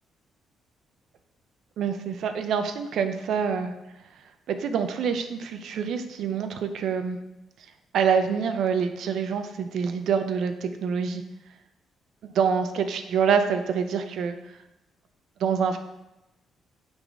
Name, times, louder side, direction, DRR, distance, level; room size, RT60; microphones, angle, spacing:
voice 1, 1.8-3.7 4.5-7.2 7.9-11.2 12.2-14.3 15.4-15.8, right 6 dB, 75° right, 8 dB, 0.6 m, -26 dB
8.9 x 4.1 x 3.6 m, 0.93 s
cardioid pair, 90°, 0 cm